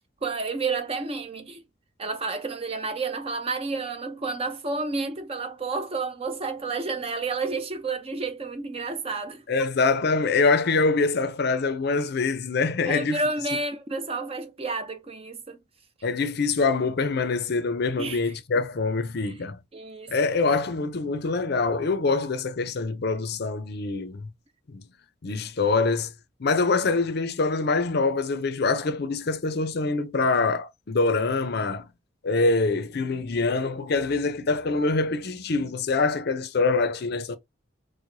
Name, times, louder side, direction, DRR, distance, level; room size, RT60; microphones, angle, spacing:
voice 1, 0.2-1.6 2.0-9.4 12.9-15.6 18.0-18.3 19.2-19.3 19.7-20.1, right 3 dB, 30° right, 0.6 m, -30 dB
voice 2, 9.5-13.2 16.0-19.6 20.1-24.3 24.7-24.8 25.2-26.1 26.4-31.9 32.2-37.4, left 3 dB, 55° left, 0.5 m, -24 dB
4.6 x 2.1 x 2.6 m
head